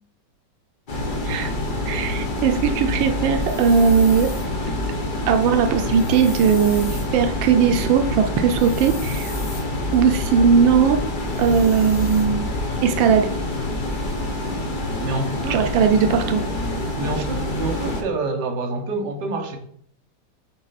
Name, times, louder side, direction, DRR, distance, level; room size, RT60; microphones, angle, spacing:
sound 1, 0.9-18.0, left 1 dB, 40° left, 0.7 m, -26 dB
voice 1, 1.9-4.3 5.3-9.4 9.9-11.0 11.4-12.5 12.8-13.3 15.5-16.4, right 6 dB, 90° right, 6 dB, 1.4 m, -18 dB
sound 2, 3.4-4.5 5.9-7.1 8.6-9.6 11.3-12.3, left 3 dB, 80° left, 2.7 m, -39 dB
voice 2, 15.0-15.7 15.9-16.1 16.6-19.6, right 3 dB, 65° right, 4 dB, 1.5 m, -28 dB
6.3 x 4.3 x 4.1 m, 0.62 s
omnidirectional pair, 2.0 m